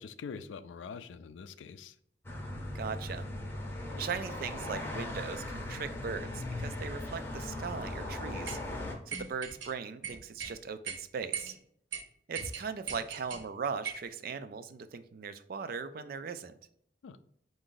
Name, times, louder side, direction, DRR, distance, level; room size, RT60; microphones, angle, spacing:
voice 1, 0.0-2.0 17.0-17.2, left 5 dB, 80° left, 12 dB, 0.3 m, -44 dB
sound 1, 2.2-8.9, left 1 dB, 15° left, 0.6 m, -38 dB
voice 2, 2.7-3.2 4.0-11.6 12.3-16.5, right 6 dB, 50° right, 11 dB, 0.3 m, -39 dB
sound 2, 8.5-8.6 9.1-9.7 10.0-10.5 10.9-11.0 11.3-11.6 11.9-12.0 12.4-13.4 13.9-14.1, right 6 dB, 85° right, 0.8 m, -39 dB
4.8 x 2.6 x 3.7 m, 0.69 s
head